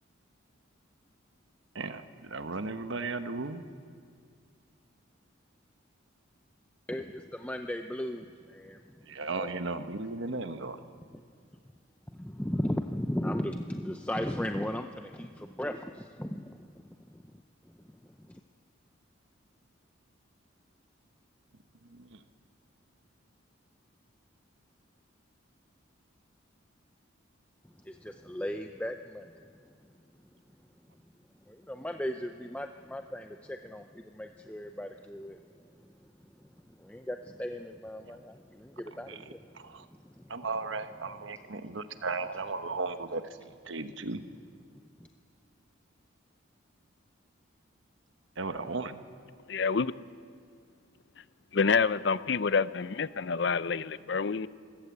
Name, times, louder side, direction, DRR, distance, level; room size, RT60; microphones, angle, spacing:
voice 1, 1.7-3.6 9.1-10.8 21.9-22.2 38.0-38.1 39.1-39.2 39.5-39.8 40.3-43.2 43.7-44.2 48.4-49.0, right 3 dB, 65° right, 9 dB, 1.1 m, -35 dB
voice 2, 6.9-8.8 9.3-9.5 11.1-11.2 12.1-16.6 17.1-17.2 18.3-18.4 27.8-29.3 31.5-35.4 36.8-39.4 40.0-40.2, equal, 5° left, 6 dB, 0.5 m, -36 dB
voice 3, 49.5-49.9 51.5-54.5, left 5 dB, 55° left, 16 dB, 0.5 m, -27 dB
27.5 x 14.5 x 8.3 m, 2.2 s
head